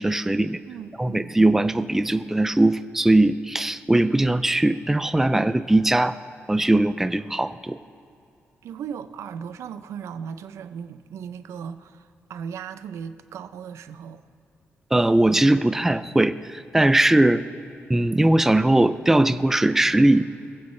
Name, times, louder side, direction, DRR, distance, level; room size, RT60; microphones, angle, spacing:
voice 1, 0.0-0.6 1.0-6.2 6.5-7.8 14.9-17.4 17.9-20.2, right 1 dB, 10° right, 12 dB, 0.4 m, -20 dB
voice 2, 0.7-1.4 8.6-14.2, right 7 dB, 85° right, 11 dB, 0.5 m, -37 dB
22.0 x 7.9 x 3.2 m, 2.5 s
cardioid pair, 100°, 5 cm